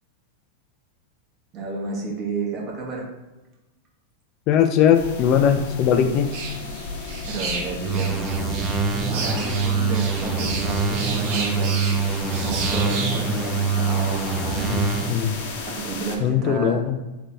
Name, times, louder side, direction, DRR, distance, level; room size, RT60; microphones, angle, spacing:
voice 1, 1.5-3.1 7.3-8.2 8.9-11.7 12.4-16.8, right 4 dB, 40° right, -1 dB, 1.3 m, -31 dB
voice 2, 4.5-6.3 14.7-14.8 15.1-15.4 16.2-17.0, left 8 dB, 45° left, 8 dB, 0.4 m, -19 dB
sound 1, 4.9-16.2, left 3 dB, 65° left, 0.9 m, -34 dB
sound 2, 6.3-13.2, right 4 dB, 60° right, 1.0 m, -33 dB
sound 3, 7.8-15.2, right 4 dB, 20° right, 0.5 m, -25 dB
3.3 x 3.3 x 4.2 m, 1.1 s
hypercardioid pair, 115°, 0 cm